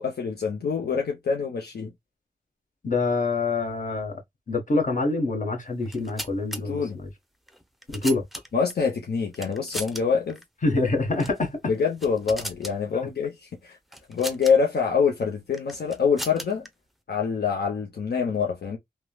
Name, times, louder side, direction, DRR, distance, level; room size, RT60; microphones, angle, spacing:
voice 1, 0.0-1.9 6.6-7.0 8.5-10.4 11.7-13.8 14.1-16.7 17.1-18.8, left 6 dB, 75° left, 0.8 m, -25 dB
voice 2, 2.8-4.2 4.5-7.1 7.9-8.2 10.6-11.6, left 3 dB, 50° left, 1.2 m, -25 dB
sound 1, 5.8-6.6 7.5-8.7 9.3-10.0 10.3-10.4 11.1-11.4 11.8-12.8 13.9-14.5 15.5-16.7, equal, ahead, 0.6 m, -37 dB
3.2 x 2.2 x 2.2 m
cardioid pair, 65°, 17 cm